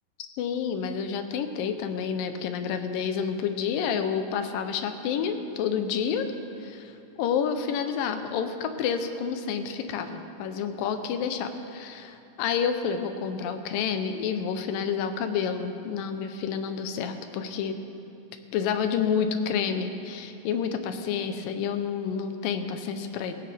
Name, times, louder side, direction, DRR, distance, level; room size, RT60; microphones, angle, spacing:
voice 1, 0.4-6.3 6.6-17.8 18.5-23.3, left 7 dB, 80° left, 8 dB, 2.4 m, -29 dB
18.0 x 15.5 x 3.4 m, 2.8 s
omnidirectional pair, 4.0 m